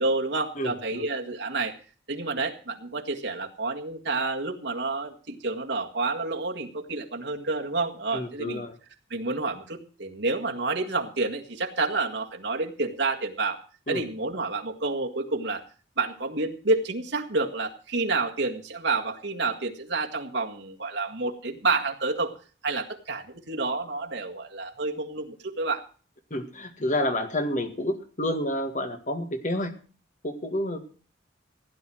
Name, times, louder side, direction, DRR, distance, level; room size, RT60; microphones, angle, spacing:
voice 1, 0.0-1.7 2.1-8.6 9.1-13.6 13.9-15.6 16.0-22.3 22.6-25.8, right 3 dB, 65° right, 2 dB, 1.8 m, -29 dB
voice 2, 0.6-1.1 8.1-8.8 13.9-14.0 26.3-29.7 30.2-30.8, left 1 dB, 40° left, 8 dB, 1.8 m, -29 dB
16.0 x 10.0 x 6.2 m, 0.39 s
head